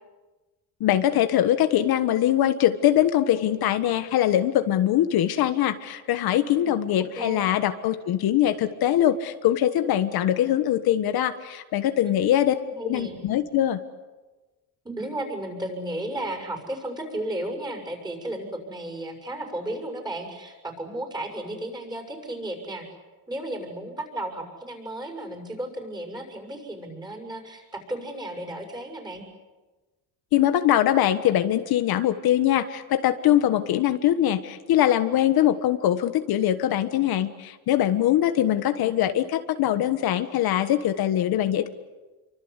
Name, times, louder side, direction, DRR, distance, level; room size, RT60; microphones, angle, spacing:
voice 1, 0.8-12.6 12.8-13.8 30.3-41.7, left 12 dB, 70° left, 9 dB, 1.4 m, -22 dB
voice 2, 6.3-6.8 7.1-7.5 12.0-12.3 12.7-13.2 14.8-22.8 23.3-29.3 38.8-39.1, right 1 dB, 10° right, 5 dB, 6.6 m, -34 dB
29.0 x 24.5 x 8.2 m, 1.2 s
cardioid pair, 165°, 39 cm